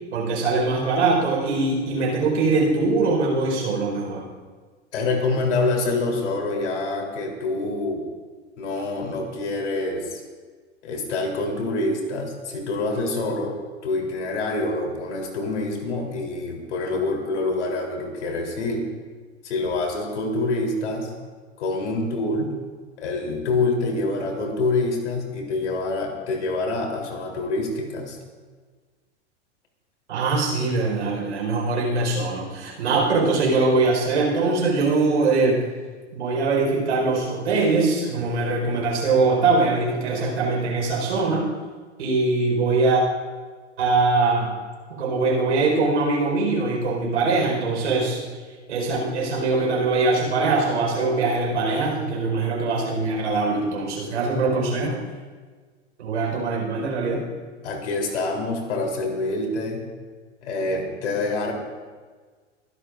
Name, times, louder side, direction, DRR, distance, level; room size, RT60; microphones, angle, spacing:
voice 1, 0.1-4.3 30.1-35.6 36.1-41.5 42.0-43.0 43.8-44.5 44.9-48.2 48.7-55.0 56.0-57.2, right 3 dB, 80° right, 0 dB, 4.7 m, -22 dB
voice 2, 4.9-8.0 8.6-10.2 10.8-13.6 13.8-18.9 19.4-21.1 21.6-22.6 23.0-28.2 57.6-59.9 60.4-61.5, left 2 dB, 75° left, 0 dB, 3.6 m, -26 dB
23.5 x 11.5 x 2.6 m, 1.5 s
hypercardioid pair, 105°, 35 cm